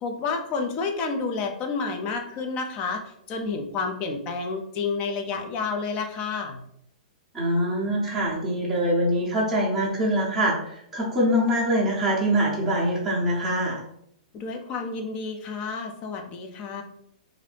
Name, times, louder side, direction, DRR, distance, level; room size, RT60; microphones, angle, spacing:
voice 1, 0.0-6.6 14.3-16.8, left 4 dB, 30° left, 4 dB, 0.5 m, -30 dB
voice 2, 7.3-13.8, equal, 5° right, -10 dB, 0.7 m, -24 dB
2.7 x 2.5 x 3.3 m, 0.72 s
hypercardioid pair, 155°, 4 cm